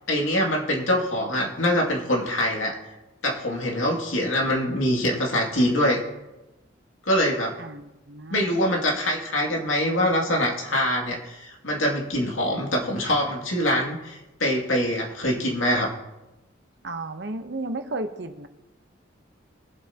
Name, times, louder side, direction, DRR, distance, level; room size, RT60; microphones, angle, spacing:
voice 1, 0.1-2.8 3.2-6.0 7.1-7.6 8.3-15.9, equal, 90° left, 0 dB, 2.5 m, -24 dB
voice 2, 7.6-8.5 16.8-18.5, right 2 dB, 60° right, 7 dB, 1.0 m, -33 dB
22.5 x 8.0 x 2.9 m, 1.0 s
head